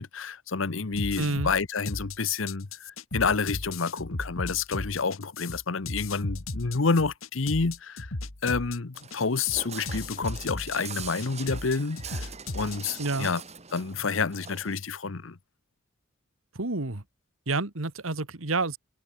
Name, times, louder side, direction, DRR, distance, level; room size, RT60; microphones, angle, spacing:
voice 1, 0.0-8.1 8.4-12.2 12.5-13.4 13.7-15.4, left 4 dB, 70° left, 0.9 m, -29 dB
sound 1, 0.9-13.2, left 2 dB, 85° left, 2.5 m, -36 dB
voice 2, 1.2-1.5 13.0-13.3 16.5-17.0 17.5-18.8, right 3 dB, 85° right, 2.0 m, -29 dB
Walk footsteps, 8.9-14.7, right 6 dB, 35° right, 3.6 m, -43 dB
head